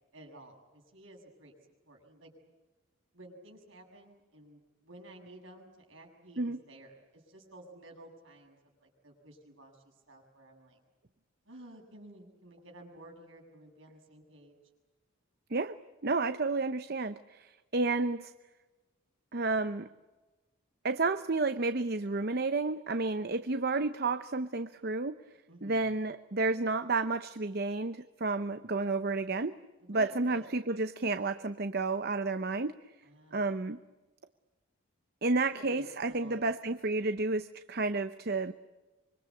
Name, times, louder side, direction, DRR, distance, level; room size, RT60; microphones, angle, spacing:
voice 1, 0.1-1.6 1.8-2.3 3.1-10.8 11.5-14.6 25.5-25.9 29.8-30.5 33.0-33.5 35.5-36.5, right 1 dB, 65° right, 2 dB, 7.2 m, -53 dB
voice 2, 16.0-18.3 19.3-19.9 20.8-25.2 25.6-29.6 29.9-32.7 33.3-33.8 35.2-38.5, right 3 dB, 45° right, 11 dB, 0.8 m, -31 dB
26.0 x 24.5 x 8.4 m, 1.2 s
head